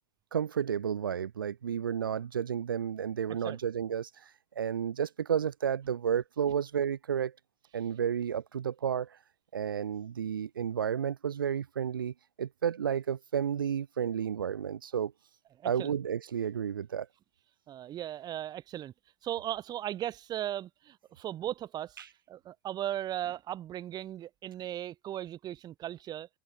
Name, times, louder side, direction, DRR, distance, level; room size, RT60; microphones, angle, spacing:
voice 1, 0.3-7.3 7.7-9.2 9.5-15.1 15.6-17.1 22.0-22.1, right 8 dB, 80° right, 2.0 m, -32 dB
voice 2, 15.6-15.9 17.7-18.9 19.2-22.0 22.3-26.3, right 12 dB, 35° right, 6.9 m, -37 dB
hypercardioid pair, 90°, 11 cm